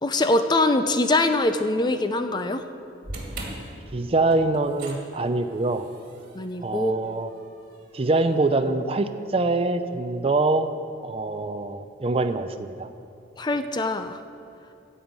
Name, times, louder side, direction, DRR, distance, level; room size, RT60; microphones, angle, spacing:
voice 1, 0.0-2.6 6.3-7.1 13.4-14.2, left 2 dB, 25° left, 8 dB, 0.5 m, -23 dB
sound 1, 3.0-9.3, right 1 dB, 50° right, 2.2 m, -42 dB
voice 2, 3.9-5.9 6.6-7.3 7.9-10.7 11.0-12.9, right 2 dB, 30° right, 9 dB, 0.5 m, -24 dB
15.0 x 5.5 x 8.8 m, 2.8 s
head